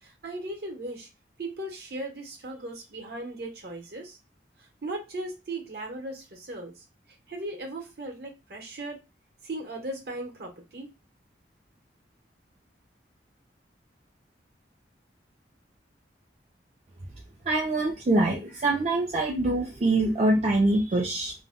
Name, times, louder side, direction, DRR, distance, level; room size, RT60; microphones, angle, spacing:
voice 1, 0.0-1.1 1.4-4.2 4.6-9.0 9.4-10.9, right 2 dB, 60° right, 2 dB, 0.8 m, -37 dB
voice 2, 17.5-21.3, right 2 dB, 35° right, -2 dB, 0.4 m, -24 dB
2.1 x 2.1 x 3.5 m, 0.26 s
head